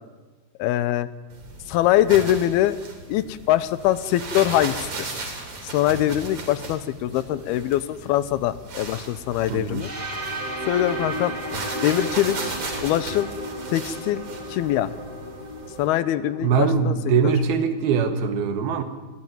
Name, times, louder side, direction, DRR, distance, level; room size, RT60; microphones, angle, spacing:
voice 1, 0.6-1.1 1.7-2.8 3.1-5.1 5.6-9.9 10.7-11.3 11.8-12.5 12.8-13.3 13.7-14.2 14.5-14.9 15.8-16.9 17.2-17.3, left 13 dB, 80° left, 15 dB, 2.7 m, -23 dB
sound 1, 1.3-15.9, right 3 dB, 45° right, 4.7 m, -36 dB
voice 2, 9.5-9.9 16.4-18.8, right 6 dB, 75° right, 8 dB, 3.5 m, -22 dB
sound 2, 9.8-17.6, right 1 dB, 20° right, 4.4 m, -34 dB
22.0 x 15.5 x 9.4 m, 1.3 s
omnidirectional pair, 4.6 m